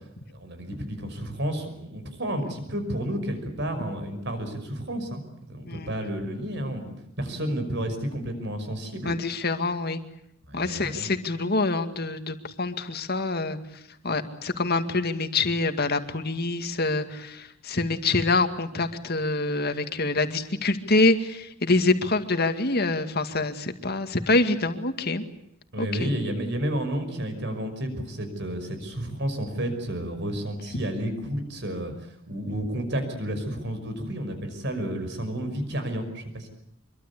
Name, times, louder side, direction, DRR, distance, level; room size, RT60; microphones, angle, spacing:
voice 1, 0.3-9.1 10.5-11.1 25.7-31.9 32.3-36.5, right 1 dB, 60° right, 8 dB, 5.6 m, -31 dB
voice 2, 9.0-10.0 10.5-13.6 14.0-25.2 25.8-26.1, left 3 dB, 50° left, 8 dB, 2.1 m, -26 dB
25.5 x 23.5 x 8.4 m, 0.76 s
head